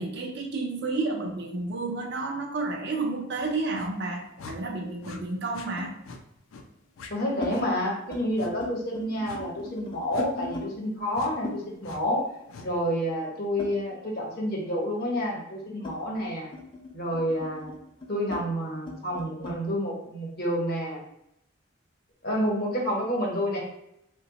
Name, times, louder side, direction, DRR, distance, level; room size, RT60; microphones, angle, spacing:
voice 1, 0.0-5.9, right 3 dB, 55° right, 2 dB, 0.5 m, -31 dB
sound 1, 3.1-4.5 5.8-6.0 6.8-7.6 7.9-8.3 8.5-10.7 11.4-14.3 14.6-19.6, left 3 dB, 25° left, 0.5 m, -41 dB
sound 2, 3.7-3.9 4.4-4.6 5.0-5.2 5.5-5.7 6.0-6.2 6.5-6.7 7.0-7.1 7.5-7.7 8.4-8.5 9.2-9.4 10.1-10.3 11.1-11.3 11.8-12.0 12.5-12.7, left 4 dB, 85° left, 0.4 m, -43 dB
voice 2, 7.1-12.2 12.6-16.5 16.9-17.7 18.1-21.0 22.2-23.6, equal, 50° left, -2 dB, 0.9 m, -29 dB
2.8 x 2.2 x 4.0 m, 0.81 s
head